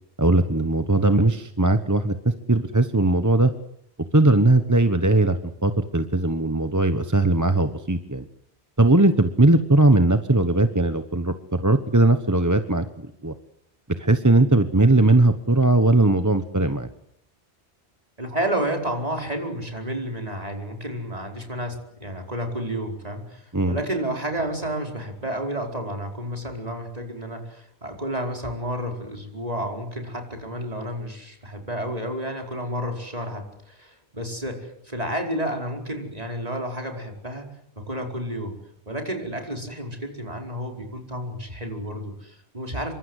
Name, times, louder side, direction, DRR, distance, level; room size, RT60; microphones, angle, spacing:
voice 1, 0.2-3.5 4.1-8.2 8.8-13.3 14.0-16.9 23.5-23.8, right 2 dB, 15° right, 9 dB, 1.1 m, -19 dB
voice 2, 18.2-37.5 37.8-38.6 38.9-42.9, right 1 dB, 35° right, 2 dB, 5.1 m, -31 dB
27.0 x 24.0 x 8.1 m, 0.73 s
omnidirectional pair, 1.1 m